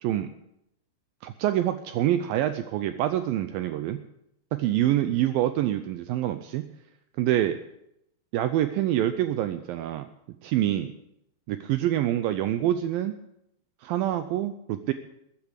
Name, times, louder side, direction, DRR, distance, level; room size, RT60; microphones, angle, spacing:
voice 1, 1.2-4.0 4.5-6.7 7.2-7.6 8.3-10.1 10.4-10.9 11.5-13.1 13.8-14.9, right 12 dB, 80° right, 10 dB, 2.1 m, -26 dB
14.0 x 8.8 x 8.1 m, 0.80 s
omnidirectional pair, 4.7 m